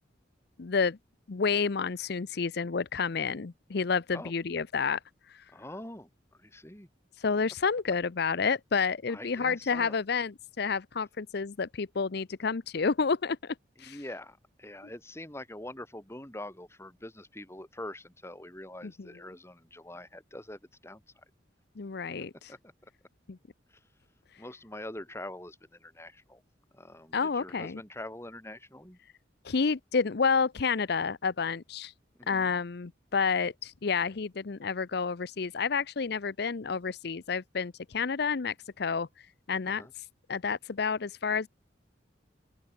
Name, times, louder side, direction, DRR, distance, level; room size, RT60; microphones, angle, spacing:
voice 1, 0.6-1.0 1.3-5.0 5.3-5.4 7.2-13.5 13.8-14.0 19.0-19.1 21.8-22.5 23.3-23.4 27.1-27.8 29.4-31.9 32.3-39.1 39.5-40.0 40.3-41.5, left 5 dB, 60° left, 0.6 m, -30 dB
voice 2, 5.5-6.1 6.4-6.9 9.1-10.0 13.8-21.0 22.5-22.6 24.4-26.4 26.7-29.0 32.2-32.5 39.6-39.9, left 1 dB, 15° left, 5.1 m, -44 dB
open air
head